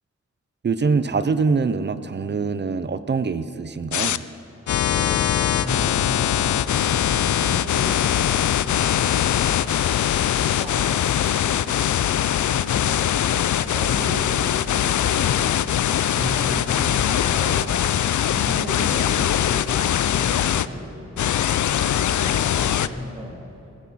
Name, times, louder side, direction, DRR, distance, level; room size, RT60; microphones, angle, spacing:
voice 1, 0.6-4.2, right 4 dB, 40° right, 13 dB, 0.5 m, -24 dB
sound 1, 3.9-4.2 4.7-20.7 21.2-22.9, left 10 dB, 85° left, 0.5 m, -21 dB
voice 2, 4.9-8.7 9.2-11.8 12.5-13.1 13.4-17.8 18.3-21.2 21.7-23.4, equal, 20° right, -4 dB, 2.9 m, -35 dB
19.5 x 14.5 x 4.1 m, 2.9 s
wide cardioid pair, 170°, 29 cm